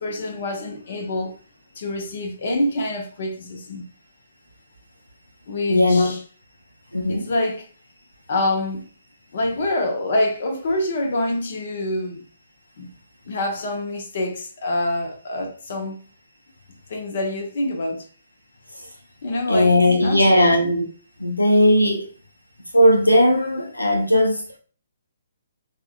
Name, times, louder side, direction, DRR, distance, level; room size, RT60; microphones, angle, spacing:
voice 1, 0.0-1.4 1.8-3.8 5.5-6.2 7.1-7.7 8.3-8.8 9.3-12.2 12.8-12.9 13.3-16.0 16.9-18.1 19.2-20.6, left 1 dB, 50° left, 0.7 m, -26 dB
voice 2, 5.7-6.1 6.9-7.2 19.5-20.9 21.2-22.1 22.7-24.6, left 1 dB, 90° left, 0.5 m, -17 dB
3.6 x 2.2 x 2.3 m
figure-of-eight pair, 130°, 0 cm